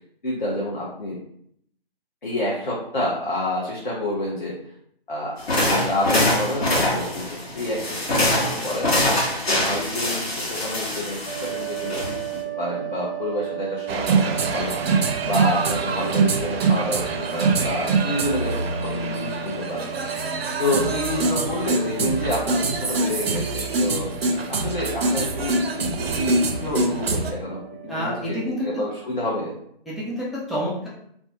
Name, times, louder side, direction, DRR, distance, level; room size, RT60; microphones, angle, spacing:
voice 1, 0.2-1.2 2.2-4.6 5.1-9.2 9.6-12.1 12.6-14.7 15.2-19.9 20.6-24.1 24.5-29.5, left 1 dB, 55° left, -5 dB, 0.6 m, -28 dB
sound 1, 5.4-12.4, left 1 dB, 75° left, 1.0 m, -24 dB
sound 2, 11.3-28.5, right 16 dB, 35° left, 1.0 m, -36 dB
sound 3, 13.9-27.3, right 3 dB, 75° right, 0.5 m, -24 dB
voice 2, 27.9-28.8 29.9-30.9, equal, ahead, -8 dB, 0.3 m, -28 dB
2.4 x 2.1 x 2.7 m, 0.69 s
hypercardioid pair, 175°, 31 cm